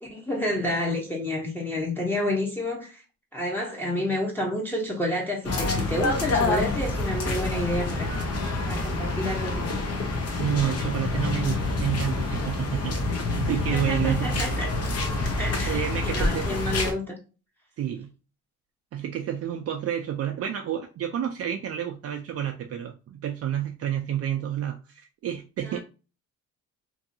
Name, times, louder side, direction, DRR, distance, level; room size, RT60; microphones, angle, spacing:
voice 1, 0.0-3.0 3.3-8.2 8.6-9.8 13.7-14.7 15.2-17.2 25.6-25.8, left 1 dB, 5° left, 0.8 m, -29 dB
sound 1, 5.4-16.9, left 2 dB, 55° left, 0.8 m, -27 dB
voice 2, 10.4-13.0 13.3-14.4 15.7-16.8 17.8-18.1 18.9-25.8, right 10 dB, 55° right, 0.4 m, -29 dB
2.7 x 2.6 x 2.6 m
cardioid pair, 90°, 30 cm